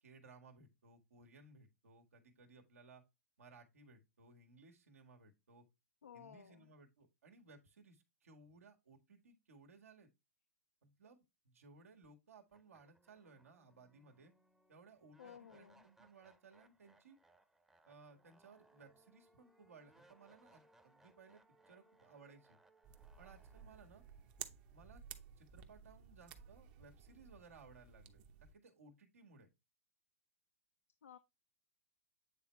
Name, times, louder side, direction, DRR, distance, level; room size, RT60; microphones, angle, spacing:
voice 1, 0.0-3.0 3.4-5.7 6.1-10.1 10.8-14.3 14.7-17.2 17.8-22.6 23.2-24.0 24.7-25.0 25.4-29.5, right 4 dB, 85° right, 1.8 m, -62 dB
voice 2, 6.0-6.7 15.2-15.9 31.0-31.2, left 8 dB, 90° left, 0.5 m, -56 dB
sound 1, 12.0-12.1 12.5-25.6, right 2 dB, 5° right, 0.7 m, -70 dB
sound 2, 22.8-28.5, right 9 dB, 45° right, 0.9 m, -55 dB
9.0 x 3.5 x 3.1 m
hypercardioid pair, 125°, 8 cm